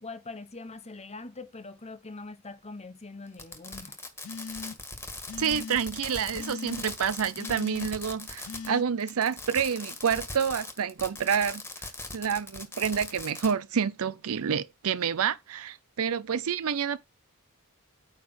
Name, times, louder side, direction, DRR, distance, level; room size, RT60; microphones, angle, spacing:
voice 1, 0.0-4.0, left 3 dB, 30° left, 1.2 m, -43 dB
Fireworks, 3.3-8.7 9.0-13.5, left 2 dB, 10° left, 1.8 m, -40 dB
sound 1, 4.2-4.9 5.3-5.8 6.3-6.9 7.4-7.9 8.4-8.8, left 5 dB, 75° left, 0.5 m, -39 dB
voice 2, 5.4-11.6 12.1-17.0, right 7 dB, 70° right, 0.5 m, -28 dB
9.7 x 3.5 x 6.2 m
head